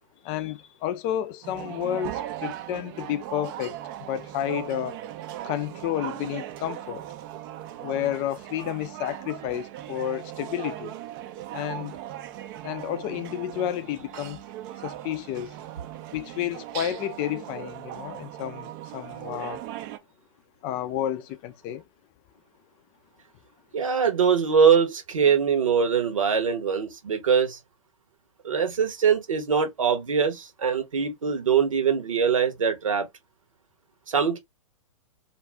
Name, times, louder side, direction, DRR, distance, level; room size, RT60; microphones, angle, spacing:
voice 1, 0.2-5.0 5.4-7.0 7.8-10.9 11.5-12.0 12.6-14.4 14.8-15.6 16.1-19.6 20.6-21.8, left 11 dB, 30° left, 0.4 m, -31 dB
sound 1, 1.4-20.0, right 12 dB, 40° right, 0.5 m, -38 dB
voice 2, 23.7-27.6 28.4-33.1 34.1-34.4, right 6 dB, 80° right, 1.1 m, -22 dB
2.6 x 2.3 x 3.4 m
hypercardioid pair, 115°, 17 cm